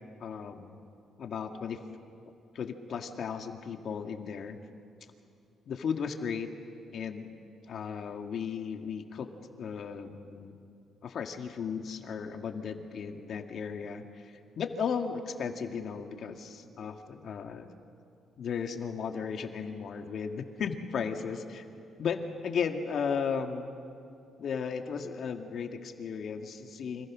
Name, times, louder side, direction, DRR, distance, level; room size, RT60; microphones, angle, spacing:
voice 1, 0.2-0.8 1.2-1.8 2.5-4.6 5.7-6.5 6.9-7.3 7.7-9.3 9.6-10.6 11.0-17.7 18.4-21.6 22.0-23.8 24.4-27.1, left 6 dB, 60° left, 5 dB, 2.1 m, -35 dB
29.0 x 26.0 x 6.3 m, 2.5 s
cardioid pair, 90°, 0 cm